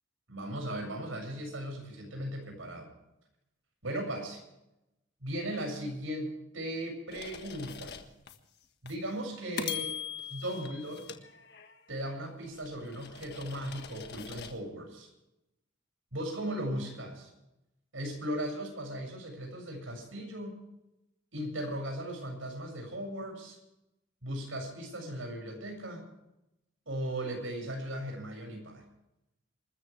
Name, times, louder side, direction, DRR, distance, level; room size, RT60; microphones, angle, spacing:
voice 1, 0.3-2.9 3.8-4.4 5.2-8.0 8.8-9.9 10.3-11.2 11.9-15.1 16.1-17.3 17.9-20.6 21.3-23.6 24.2-26.1 26.9-28.8, right 1 dB, 85° right, 3 dB, 7.2 m, -37 dB
sound 1, 7.1-8.4 8.9-9.0 9.6-11.9 12.4-14.6, left 7 dB, 55° left, 1.6 m, -42 dB
27.5 x 14.0 x 3.5 m, 0.89 s
head